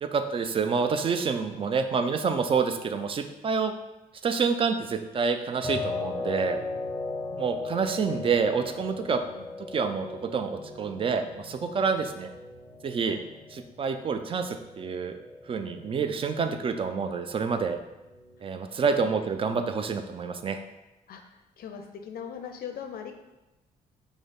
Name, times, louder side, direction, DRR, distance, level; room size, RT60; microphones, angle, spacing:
voice 1, 0.0-3.7 4.2-6.6 7.4-9.2 9.7-12.3 12.8-13.2 13.5-15.1 15.5-17.8 18.4-20.6, right 5 dB, 25° right, 8 dB, 0.4 m, -28 dB
sound 1, 5.6-18.6, left 3 dB, ahead, 0.8 m, -38 dB
voice 2, 9.1-9.5 13.0-13.2 18.8-19.1 21.1-23.1, left 7 dB, 45° left, 5 dB, 0.5 m, -41 dB
4.8 x 2.0 x 3.8 m, 0.97 s
figure-of-eight pair, 40°, 20 cm